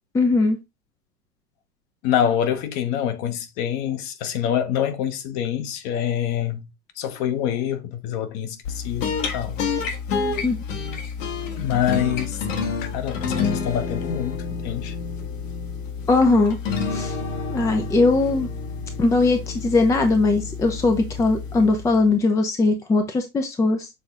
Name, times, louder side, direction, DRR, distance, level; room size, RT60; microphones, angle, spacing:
voice 1, 0.1-0.6 10.4-10.6 16.1-16.6 16.9-17.2 17.5-18.5 19.0-23.9, left 3 dB, 5° left, 0.6 m, -20 dB
voice 2, 2.0-9.6 11.6-12.5 12.9-15.0, left 10 dB, 40° left, 1.2 m, -26 dB
sound 1, 8.6-22.2, left 5 dB, 60° left, 1.7 m, -29 dB
6.8 x 4.0 x 3.6 m
figure-of-eight pair, 100°, 44 cm